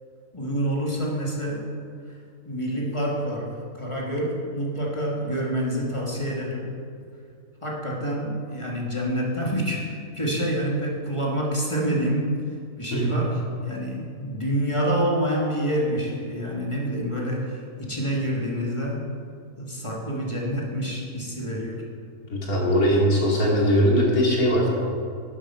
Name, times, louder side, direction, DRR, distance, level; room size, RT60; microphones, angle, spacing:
voice 1, 0.3-1.7 2.1-2.2 2.5-6.7 7.6-12.3 12.8-19.1 19.6-21.9, equal, 20° left, -3 dB, 1.9 m, -27 dB
voice 2, 22.3-24.7, equal, 75° left, -3 dB, 3.0 m, -20 dB
12.0 x 8.5 x 5.6 m, 2.3 s
omnidirectional pair, 1.5 m